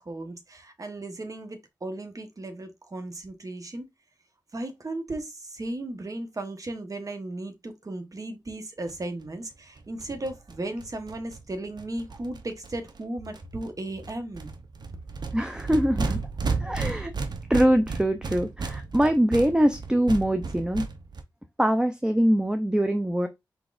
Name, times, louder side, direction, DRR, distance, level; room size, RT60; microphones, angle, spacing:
voice 1, 0.0-3.9 4.5-14.5, right 2 dB, 45° right, 1.2 m, -36 dB
sound 1, 8.9-9.0 9.2-9.3 9.5-9.6 9.8-13.0 13.3-13.7 14.0-21.2, right 4 dB, 60° right, 0.8 m, -33 dB
voice 2, 15.3-16.2 16.6-17.1 17.5-20.9 21.6-23.3, equal, 10° right, 0.6 m, -23 dB
4.7 x 3.9 x 2.5 m
cardioid pair, 45°, 8 cm